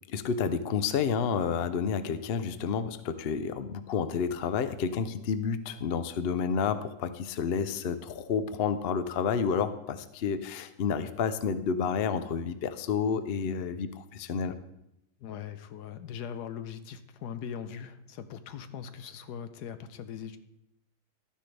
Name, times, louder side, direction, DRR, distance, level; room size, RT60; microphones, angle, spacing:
voice 1, 0.1-14.6, left 6 dB, 60° left, 11 dB, 0.6 m, -30 dB
voice 2, 15.2-20.4, left 8 dB, 80° left, 10 dB, 1.3 m, -40 dB
12.5 x 10.0 x 3.3 m, 0.84 s
omnidirectional pair, 1.7 m